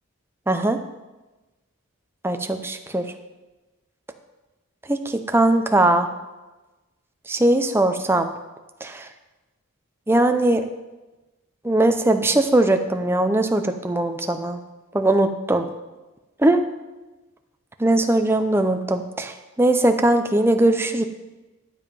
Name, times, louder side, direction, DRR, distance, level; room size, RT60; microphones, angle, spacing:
voice 1, 0.5-0.8 2.2-3.0 4.9-6.1 7.3-8.3 8.8-9.1 10.1-10.6 11.6-14.6 14.9-15.7 16.4-16.6 17.8-21.1, right 1 dB, 10° right, 7 dB, 0.6 m, -20 dB
12.0 x 7.4 x 5.3 m, 1.1 s
head